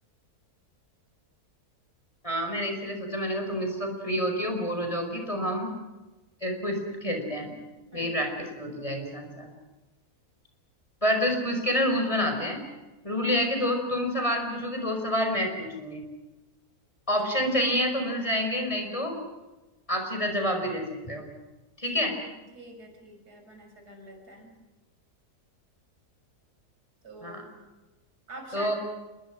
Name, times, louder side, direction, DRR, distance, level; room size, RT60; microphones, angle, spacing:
voice 1, 2.2-5.7 6.4-7.5 7.9-9.5 11.0-12.6 13.0-16.0 17.1-19.1 19.9-21.3 21.8-22.2 27.2-27.4 28.5-28.8, equal, 20° left, 3 dB, 5.2 m, -28 dB
voice 2, 7.9-8.4 21.9-24.5 27.0-27.6 28.3-28.8, right 1 dB, 80° right, 3 dB, 6.6 m, -46 dB
27.5 x 22.5 x 6.3 m, 1.1 s
omnidirectional pair, 1.7 m